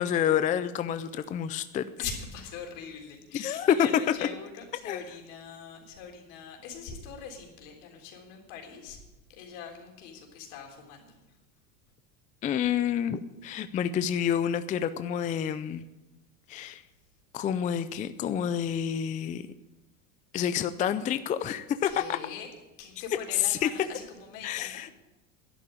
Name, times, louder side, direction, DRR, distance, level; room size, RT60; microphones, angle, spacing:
voice 1, 0.0-1.8 3.3-3.7 4.8-5.0 12.4-15.8 16.5-16.8 17.3-19.4 20.3-22.2 23.4-23.7 24.4-24.9, left 9 dB, 20° left, 12 dB, 0.4 m, -28 dB
voice 2, 2.0-9.0 9.3-11.2 21.8-22.5 22.8-24.8, left 6 dB, 70° left, 1 dB, 3.8 m, -42 dB
11.0 x 8.4 x 9.9 m, 1.0 s
supercardioid pair, 125°, 41 cm